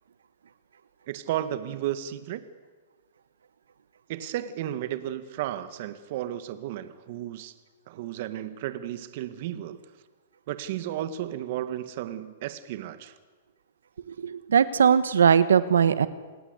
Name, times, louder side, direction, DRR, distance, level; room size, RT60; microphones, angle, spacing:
voice 1, 1.1-2.4 4.1-7.5 7.9-9.8 10.5-13.2, right 12 dB, 55° right, 12 dB, 1.9 m, -33 dB
voice 2, 14.1-16.1, right 7 dB, 90° right, 14 dB, 1.3 m, -20 dB
28.0 x 19.5 x 8.2 m, 1.4 s
hypercardioid pair, 135°, 0 cm